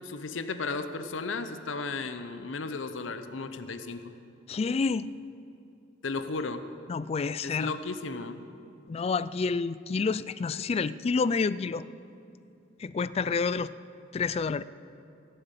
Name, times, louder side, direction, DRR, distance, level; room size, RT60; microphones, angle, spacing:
voice 1, 0.0-4.1 6.0-6.6 7.4-8.4, left 3 dB, 85° left, 10 dB, 0.8 m, -34 dB
voice 2, 4.5-5.1 6.9-7.7 8.9-11.9 12.8-13.7 14.1-14.6, left 4 dB, 30° left, 17 dB, 0.3 m, -28 dB
16.0 x 7.9 x 8.2 m, 2.7 s
head